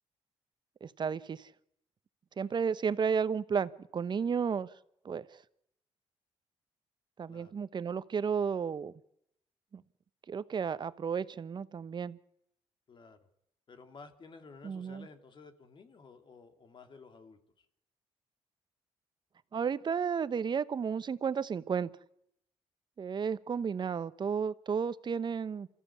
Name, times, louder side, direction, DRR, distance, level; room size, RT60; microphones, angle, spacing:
voice 1, 0.8-1.5 2.4-4.7 5.0-5.4 7.2-8.9 9.7-9.8 10.3-12.2 14.6-15.1 19.5-21.9 23.0-25.7, right 6 dB, 45° right, 16 dB, 0.9 m, -33 dB
voice 2, 12.9-13.3 13.7-17.7, left 4 dB, 45° left, 7 dB, 2.5 m, -54 dB
27.0 x 14.0 x 8.4 m, 0.76 s
cardioid pair, 85°, 11 cm